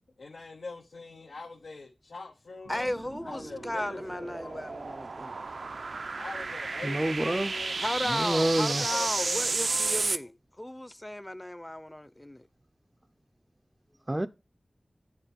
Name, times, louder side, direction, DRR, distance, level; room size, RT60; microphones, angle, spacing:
voice 1, 0.2-2.9 3.2-4.6 6.2-7.8 8.3-10.3, left 3 dB, 90° left, 1.1 m, -43 dB
voice 2, 2.7-5.4 7.8-10.3 10.6-12.4, left 1 dB, 15° left, 0.7 m, -35 dB
sound 1, 2.7-10.2, right 3 dB, 80° right, 0.6 m, -33 dB
voice 3, 6.8-7.5 8.1-8.8 14.1-14.3, right 1 dB, 25° right, 0.5 m, -27 dB
9.0 x 4.4 x 6.2 m
wide cardioid pair, 55°, 0 cm